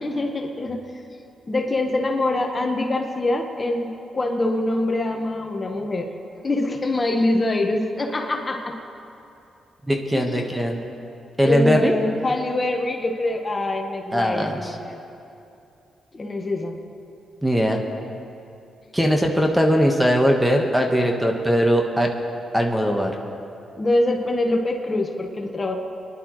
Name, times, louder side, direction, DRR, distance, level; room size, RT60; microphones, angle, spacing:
voice 1, 0.0-0.9 1.5-6.1 6.4-8.7 10.1-10.4 11.4-15.0 16.1-16.7 23.8-25.8, left 2 dB, 30° left, 3 dB, 1.3 m, -24 dB
voice 2, 9.9-10.8 11.4-11.9 14.1-14.7 17.4-17.8 18.9-22.1 22.5-23.2, equal, 5° right, 2 dB, 1.4 m, -20 dB
27.5 x 11.0 x 3.2 m, 2.7 s
cardioid pair, 85°, 0 cm